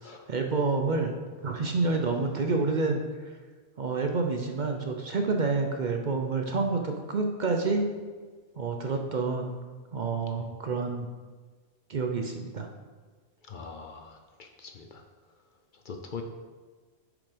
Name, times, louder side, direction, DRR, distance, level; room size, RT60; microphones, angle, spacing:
voice 1, 0.0-1.1 1.4-3.0 3.8-7.9 8.6-9.6 9.9-11.1 11.9-12.7, right 3 dB, 50° right, 3 dB, 0.7 m, -28 dB
voice 2, 13.5-15.0 15.9-16.2, left 5 dB, 50° left, 4 dB, 0.7 m, -42 dB
7.0 x 5.0 x 5.0 m, 1.4 s
omnidirectional pair, 1.2 m